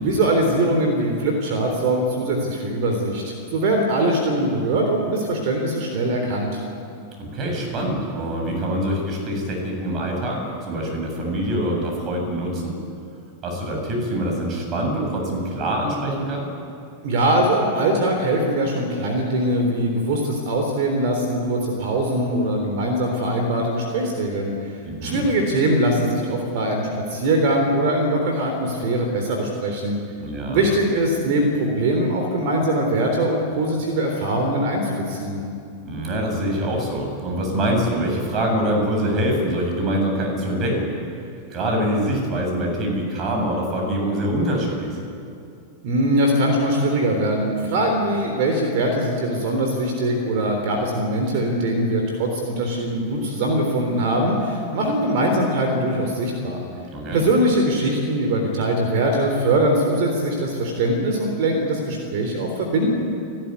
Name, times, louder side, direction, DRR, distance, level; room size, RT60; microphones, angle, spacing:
voice 1, 0.0-6.6 17.0-24.7 25.0-30.0 30.5-35.4 45.8-56.6 57.1-63.0, right 1 dB, 50° right, 2 dB, 3.7 m, -22 dB
voice 2, 7.2-12.8 13.4-16.5 24.8-25.2 30.2-30.6 35.8-40.9 41.5-45.0 56.9-57.2, equal, 30° right, 1 dB, 7.9 m, -24 dB
30.0 x 13.0 x 9.7 m, 2.5 s
figure-of-eight pair, 90°, 0 cm